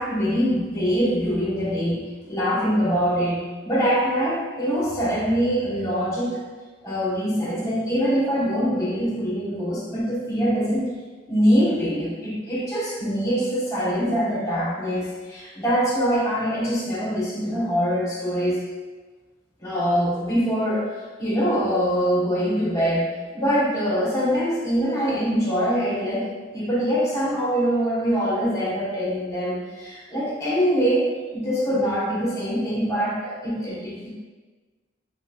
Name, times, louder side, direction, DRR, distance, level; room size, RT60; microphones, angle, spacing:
voice 1, 0.0-2.0 2.3-6.4 6.8-10.9 11.3-18.6 19.6-20.9 21.2-34.1, equal, 20° left, -8 dB, 1.0 m, -23 dB
3.3 x 2.8 x 2.3 m, 1.3 s
head